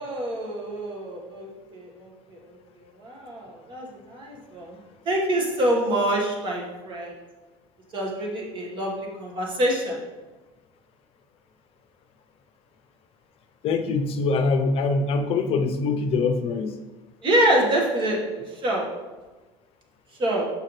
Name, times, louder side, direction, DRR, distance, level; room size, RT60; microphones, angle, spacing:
voice 1, 0.0-4.8 5.1-7.1 7.9-10.0 17.2-18.9 20.2-20.5, right 1 dB, 40° right, -1 dB, 1.7 m, -26 dB
voice 2, 13.6-16.7, left 4 dB, 45° left, 6 dB, 0.7 m, -23 dB
6.9 x 5.5 x 3.3 m, 1.2 s
cardioid pair, 130°, 13 cm